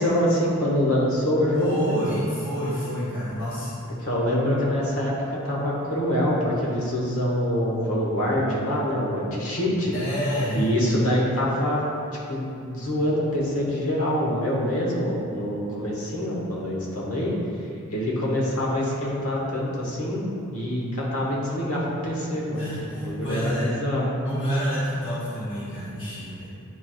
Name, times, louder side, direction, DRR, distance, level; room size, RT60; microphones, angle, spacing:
voice 1, 0.0-2.2 4.0-9.9 10.5-11.8 12.3-17.3 17.9-22.6 22.9-24.1, equal, 75° left, -4 dB, 1.4 m, -25 dB
voice 2, 1.5-3.7 9.9-10.7 22.6-23.7 24.2-26.5, equal, 60° left, -9 dB, 1.1 m, -28 dB
9.5 x 4.6 x 2.3 m, 2.5 s
head